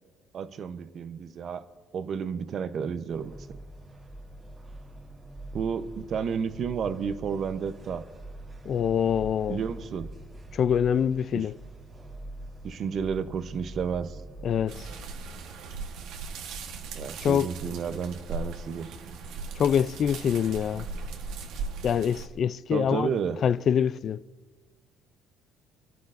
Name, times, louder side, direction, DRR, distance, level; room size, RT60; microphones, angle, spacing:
voice 1, 0.3-1.6 1.9-3.3 5.5-8.0 9.5-10.1 11.3-11.5 12.6-14.2 16.9-19.0 22.7-23.4, right 6 dB, 50° right, 0.8 m, -31 dB
sound 1, 3.1-15.0, right 1 dB, 25° right, 1.5 m, -44 dB
voice 2, 8.7-9.6 10.5-11.6 14.4-14.9 17.2-17.5 19.6-20.9 21.8-23.1 23.4-24.2, left 8 dB, 45° left, 0.3 m, -25 dB
sound 2, 14.7-22.3, right 4 dB, 75° right, 1.2 m, -38 dB
28.0 x 11.5 x 2.6 m
cardioid pair, 115°, 0 cm